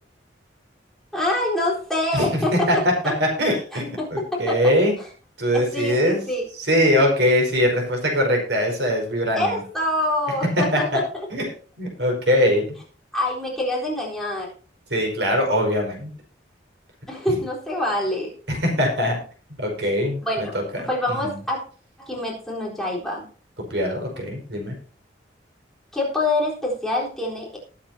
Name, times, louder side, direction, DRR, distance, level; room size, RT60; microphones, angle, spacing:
voice 1, 1.1-3.1 3.7-4.7 5.5-6.4 9.3-11.0 13.1-14.5 17.1-18.3 20.2-20.6 20.9-21.6 22.0-23.3 25.9-27.6, left 1 dB, ahead, -5 dB, 4.0 m, -26 dB
voice 2, 2.1-2.8 3.2-4.9 5.4-6.2 6.6-9.6 10.7-11.0 11.3-11.4 11.8-12.6 14.9-16.1 18.5-19.2 19.6-20.5 21.2-21.4 23.7-24.8, equal, 70° right, 1 dB, 5.1 m, -22 dB
19.5 x 8.7 x 2.8 m, 0.39 s
head